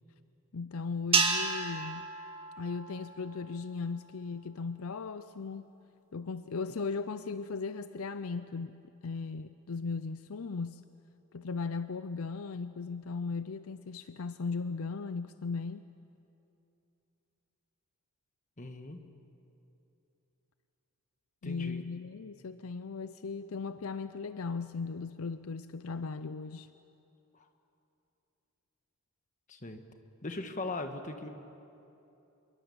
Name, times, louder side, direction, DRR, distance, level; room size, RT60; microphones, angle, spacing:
voice 1, 0.5-2.1 2.6-5.7 6.1-10.8 11.3-15.8 21.4-26.7, left 4 dB, 70° left, 12 dB, 0.6 m, -37 dB
sound 1, 1.1-3.6, right 4 dB, 25° right, 2.0 m, -31 dB
voice 2, 18.6-19.0 21.4-21.8 29.5-29.8 30.2-31.3, left 2 dB, 35° left, 6 dB, 1.5 m, -39 dB
25.5 x 22.5 x 7.2 m, 2.8 s
head